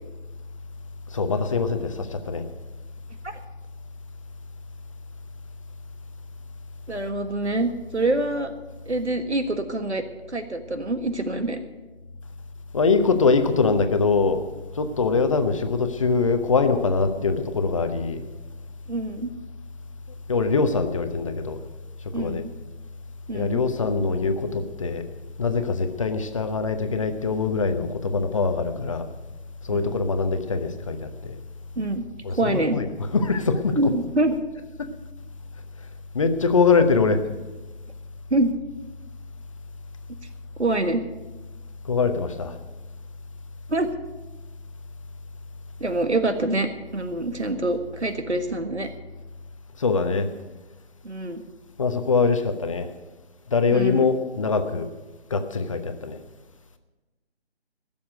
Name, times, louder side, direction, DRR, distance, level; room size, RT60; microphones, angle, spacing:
voice 1, 1.1-2.4 12.7-14.4 14.7-18.2 20.3-21.6 22.2-22.4 23.3-25.1 25.4-29.1 29.6-31.4 32.2-33.9 34.8-34.9 36.1-37.2 41.8-42.6 49.8-50.3 51.8-52.9 53.5-54.9 55.3-56.2, left 4 dB, 30° left, 8 dB, 0.9 m, -23 dB
voice 2, 6.9-8.5 8.8-10.0 10.3-11.6 18.9-19.3 22.1-22.5 23.3-23.6 29.7-29.9 31.7-32.0 32.4-32.8 33.7-34.3 38.3-38.5 40.6-41.0 43.7-43.9 45.8-48.9 51.0-51.4 53.7-54.1, right 2 dB, 80° right, 8 dB, 1.7 m, -25 dB
15.5 x 7.1 x 9.2 m, 1.1 s
figure-of-eight pair, 150°, 33 cm